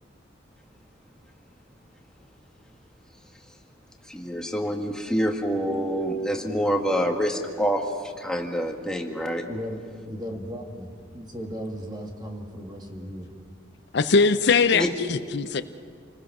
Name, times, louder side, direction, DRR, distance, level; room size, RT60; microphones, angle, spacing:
voice 1, 4.1-9.5 14.7-14.9, equal, 5° left, 1 dB, 1.8 m, -26 dB
voice 2, 9.5-13.3, equal, 25° right, 2 dB, 2.3 m, -36 dB
voice 3, 13.9-15.6, left 4 dB, 60° left, 11 dB, 0.6 m, -21 dB
28.5 x 20.0 x 6.1 m, 2.1 s
head